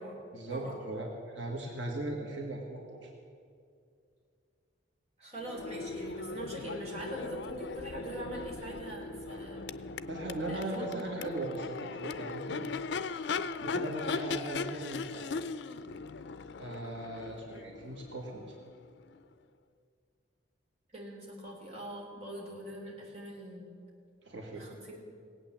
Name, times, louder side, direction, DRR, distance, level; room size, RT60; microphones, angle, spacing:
voice 1, 0.3-3.1 10.1-12.7 13.6-15.3 16.6-18.5 24.2-24.6, right 2 dB, 80° right, 0 dB, 1.9 m, -38 dB
voice 2, 5.2-9.6 10.5-11.2 20.9-23.7 24.5-25.0, right 1 dB, 35° right, -3 dB, 3.5 m, -43 dB
Crowd / Race car auto racing / Accelerating revving vroom, 5.4-19.2, left 4 dB, 70° left, 0.5 m, -39 dB
18.0 x 8.8 x 7.5 m, 2.3 s
head